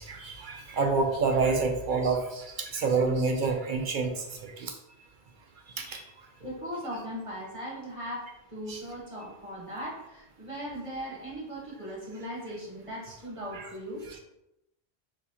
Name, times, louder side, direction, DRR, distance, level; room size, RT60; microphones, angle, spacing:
voice 1, 0.0-4.7 5.8-6.0 8.7-8.8 13.5-13.7 14.1-14.2, right 4 dB, 60° right, 4 dB, 0.6 m, -28 dB
voice 2, 6.4-14.0, equal, 30° right, -5 dB, 1.2 m, -38 dB
5.9 x 2.7 x 2.9 m, 0.89 s
omnidirectional pair, 1.1 m